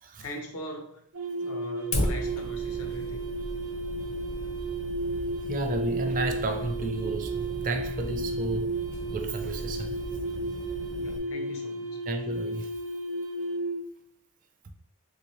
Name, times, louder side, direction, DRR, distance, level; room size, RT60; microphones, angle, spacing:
voice 1, 0.2-1.0 1.4-3.2 11.0-12.0, equal, 70° left, 0.8 m, -40 dB
sound 1, 1.1-13.9, right 2 dB, 85° right, 0.6 m, -33 dB
Fire, 1.9-11.2, left 1 dB, 35° left, 0.5 m, -36 dB
voice 2, 5.5-8.7 9.1-10.2 12.1-12.7, right 2 dB, 40° right, 0.4 m, -32 dB
3.4 x 2.7 x 3.1 m
head